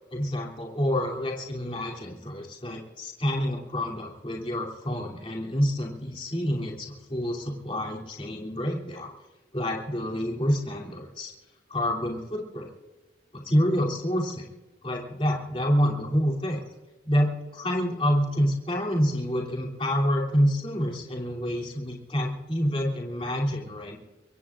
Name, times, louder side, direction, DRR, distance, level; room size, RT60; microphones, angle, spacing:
voice 1, 0.1-9.1 9.5-11.3 11.7-12.7 13.3-14.5 14.8-16.6 17.0-24.0, equal, 30° left, -1 dB, 2.9 m, -27 dB
25.5 x 22.5 x 2.5 m, 1.2 s
head